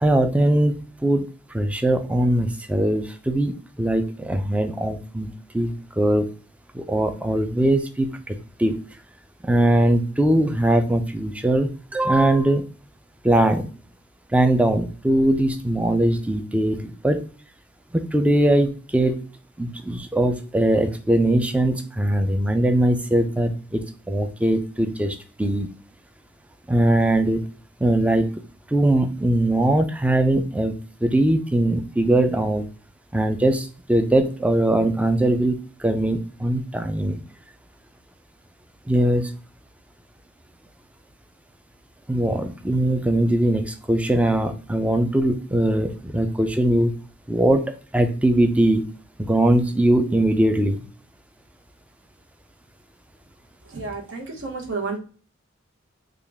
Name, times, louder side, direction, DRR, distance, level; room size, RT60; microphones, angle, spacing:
voice 1, 0.0-1.3 1.5-6.3 6.7-8.8 9.4-12.7 13.2-13.7 14.3-17.2 17.9-19.2 19.6-25.7 26.7-27.4 27.8-28.4 28.7-32.7 33.1-37.2 38.9-39.3 42.1-47.0 47.3-48.9 49.2-50.8, right 1 dB, 5° right, 8 dB, 0.3 m, -21 dB
voice 2, 53.7-55.0, right 4 dB, 65° right, 1 dB, 1.0 m, -31 dB
3.7 x 2.3 x 3.3 m, 0.37 s
head